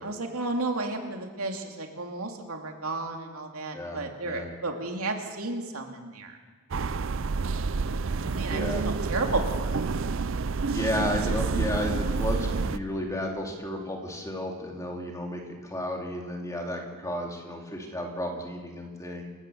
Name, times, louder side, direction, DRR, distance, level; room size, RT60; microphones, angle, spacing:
voice 1, 0.0-6.4 7.8-9.8, right 2 dB, 80° right, 2 dB, 2.7 m, -33 dB
voice 2, 3.7-4.5 8.5-8.9 10.7-19.2, left 1 dB, 15° left, 1 dB, 2.8 m, -33 dB
sound 1, 6.7-12.8, right 4 dB, 60° right, 0.5 m, -28 dB
27.5 x 14.5 x 7.0 m, 1.5 s
head